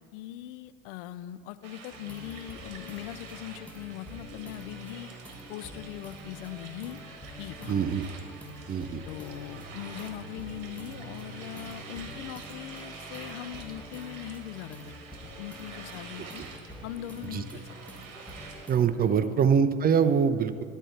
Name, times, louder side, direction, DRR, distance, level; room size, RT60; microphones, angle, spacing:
voice 1, 0.0-5.1 5.5-7.0 7.4-7.8 9.0-14.9 15.2-16.4 16.8-17.6 19.1-19.4, left 13 dB, 65° left, 14 dB, 0.5 m, -41 dB
sound 1, 1.6-18.7, right 5 dB, 55° right, 1.5 m, -47 dB
sound 2, 1.9-19.1, equal, 5° left, 1.5 m, -47 dB
voice 2, 7.7-8.0 8.7-9.0 16.4-16.5 17.2-17.4 18.7-20.6, right 7 dB, 25° right, 12 dB, 0.4 m, -24 dB
Bowed string instrument, 8.6-13.4, right 7 dB, 75° right, 0.6 m, -50 dB
11.0 x 4.5 x 5.6 m, 2.3 s
hypercardioid pair, 70°, 39 cm